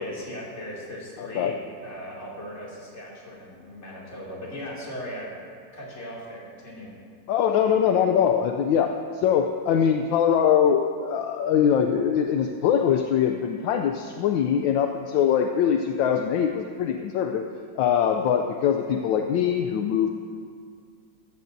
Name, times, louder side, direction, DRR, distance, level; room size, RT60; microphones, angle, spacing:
voice 1, 0.0-1.6 1.8-5.3 5.7-6.9, equal, 35° left, -6 dB, 2.8 m, -38 dB
voice 2, 1.2-1.5 7.3-17.4 17.8-20.1, left 8 dB, 75° left, 5 dB, 1.3 m, -22 dB
14.5 x 14.0 x 2.7 m, 2.2 s
omnidirectional pair, 2.1 m